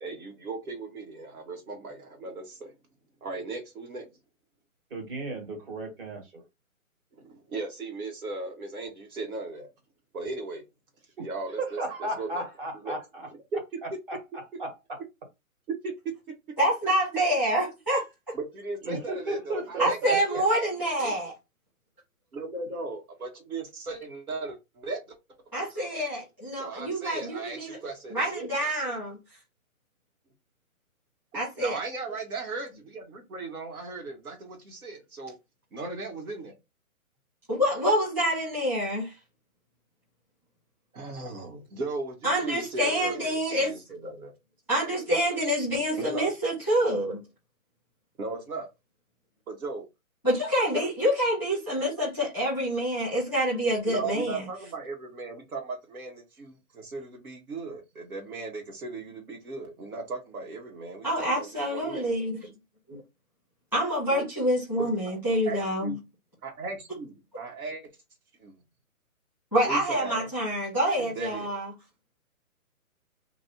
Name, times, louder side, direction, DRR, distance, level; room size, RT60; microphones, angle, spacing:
voice 1, 0.0-2.7 3.2-4.1 7.1-9.7 10.1-10.6 11.2-12.5 12.8-13.0 13.5-13.8 15.8-15.9 18.3-20.0 20.3-21.1 22.3-25.0 25.5-25.7 26.6-28.5 31.6-35.3 35.7-36.6 40.9-44.3 46.0-46.3 48.2-48.7 49.5-49.8 50.7-50.8 53.9-62.1 64.1-64.2 65.0-65.1 65.4-66.0 66.4-67.8 68.4-68.6 69.6-70.3 71.0-71.5, right 3 dB, 80° right, 1.6 m, -37 dB
voice 2, 4.9-6.4 11.2-11.3 11.6-13.3 14.1-14.2 14.6-15.0 18.8-20.2, right 2 dB, 40° right, 1.7 m, -34 dB
voice 3, 16.6-18.0 19.8-21.3 25.5-27.8 28.1-29.2 31.3-31.8 37.5-39.1 42.2-43.7 44.7-47.2 50.2-54.4 61.0-62.4 62.9-63.0 63.7-66.0 69.5-71.7, equal, 5° right, 1.2 m, -27 dB
3.1 x 2.6 x 3.9 m
hypercardioid pair, 170°, 43 cm